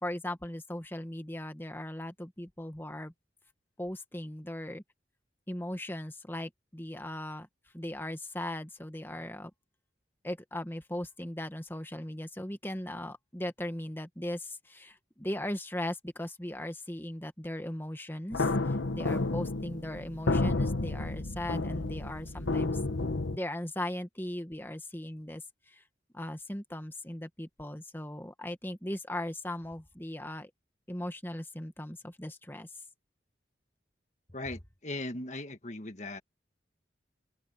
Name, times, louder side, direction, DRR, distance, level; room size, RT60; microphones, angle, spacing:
voice 1, 0.0-3.1 3.8-4.8 5.5-7.5 7.7-9.5 10.2-22.8 23.3-25.8 26.1-30.5 30.9-32.7, left 1 dB, 10° left, 1.6 m, -38 dB
sound 1, 18.3-23.4, left 2 dB, 90° left, 1.3 m, -31 dB
voice 2, 34.3-36.2, left 2 dB, 40° left, 1.6 m, -38 dB
open air
head